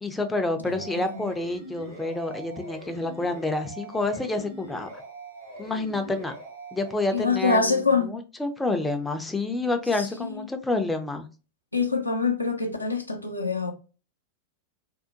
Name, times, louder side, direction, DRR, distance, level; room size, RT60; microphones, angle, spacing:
voice 1, 0.0-4.9 5.6-6.3 6.7-11.3, left 2 dB, 10° left, 0.4 m, -28 dB
sound 1, 0.6-6.9, right 2 dB, 75° right, 1.1 m, -42 dB
voice 2, 0.7-1.3 7.1-8.2 10.0-10.5 11.7-13.7, left 4 dB, 85° left, 0.4 m, -25 dB
2.7 x 2.0 x 2.5 m
figure-of-eight pair, 90°, 0 cm